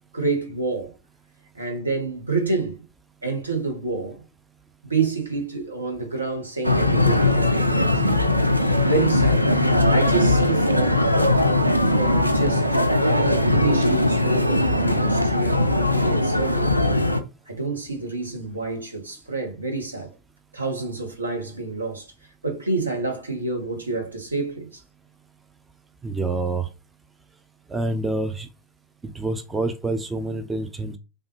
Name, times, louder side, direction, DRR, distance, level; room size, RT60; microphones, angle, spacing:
voice 1, 0.1-0.9 1.5-2.8 3.2-4.2 4.8-8.2 8.8-9.5 9.9-11.4 11.9-16.8 17.5-20.1 20.5-22.1 22.4-24.8, right 3 dB, 80° right, 0.9 m, -28 dB
sound 1, 6.6-17.2, left 1 dB, 90° left, 0.3 m, -20 dB
voice 2, 26.0-26.7 27.7-28.5 29.0-31.0, right 2 dB, 10° right, 0.4 m, -27 dB
3.3 x 2.3 x 3.0 m
figure-of-eight pair, 90°, 0 cm